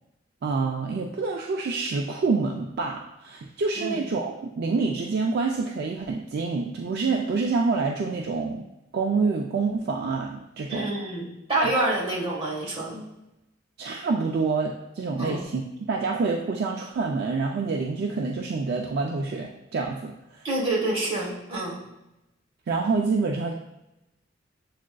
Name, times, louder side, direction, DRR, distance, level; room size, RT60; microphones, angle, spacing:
voice 1, 0.4-8.6 8.9-10.9 11.6-11.7 13.8-15.6 15.9-20.4 22.7-23.5, right 4 dB, 55° right, 1 dB, 0.3 m, -27 dB
voice 2, 10.7-11.2 11.5-13.1 15.2-15.4 20.4-21.8, right 2 dB, 30° right, -5 dB, 1.2 m, -27 dB
7.2 x 2.4 x 2.2 m, 0.92 s
head